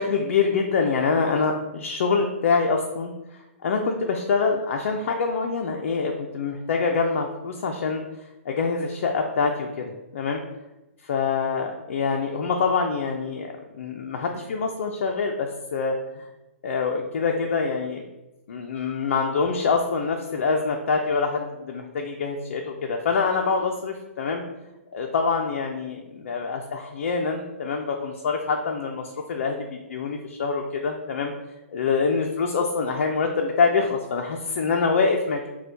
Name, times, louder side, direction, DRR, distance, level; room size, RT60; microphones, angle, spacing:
voice 1, 0.0-8.0 8.5-10.4 11.0-16.2 16.6-18.1 18.5-24.4 24.9-31.3 31.7-35.5, left 4 dB, 60° left, 2 dB, 0.5 m, -25 dB
6.0 x 2.3 x 2.7 m, 1.0 s
hypercardioid pair, 135°, 7 cm